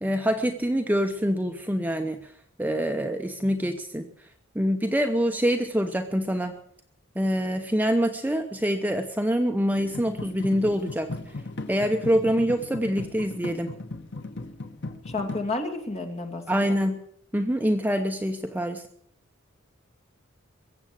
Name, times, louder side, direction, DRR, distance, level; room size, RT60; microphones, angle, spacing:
voice 1, 0.0-2.2 2.6-4.1 4.5-6.5 7.2-11.1 11.7-13.8 16.5-17.0 17.3-18.8, equal, 10° right, 5 dB, 0.8 m, -25 dB
sound 1, 9.8-15.4, left 2 dB, 60° left, 1.3 m, -37 dB
voice 2, 15.1-16.7, left 2 dB, 30° left, 4 dB, 2.3 m, -31 dB
22.0 x 8.0 x 7.6 m, 0.65 s
head